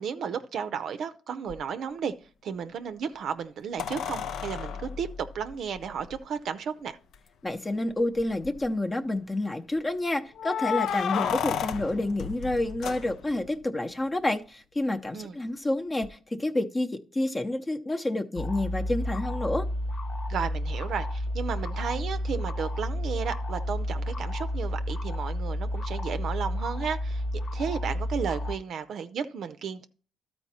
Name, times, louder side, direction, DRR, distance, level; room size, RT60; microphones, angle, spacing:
voice 1, 0.0-2.1 2.4-7.0 15.1-15.4 20.3-27.2 27.5-29.9, right 7 dB, 65° right, 0.5 m, -33 dB
sound 1, 1.5-1.6 3.8-6.2 7.1-7.2 7.5-7.6 8.2-8.7 10.4-13.5 16.0-16.1, left 8 dB, 75° left, 0.5 m, -33 dB
voice 2, 7.4-19.6, left 1 dB, 20° left, 0.7 m, -29 dB
sound 2, 18.4-28.6, left 1 dB, 60° left, 1.0 m, -31 dB
12.5 x 4.5 x 4.2 m
cardioid pair, 90°, 0 cm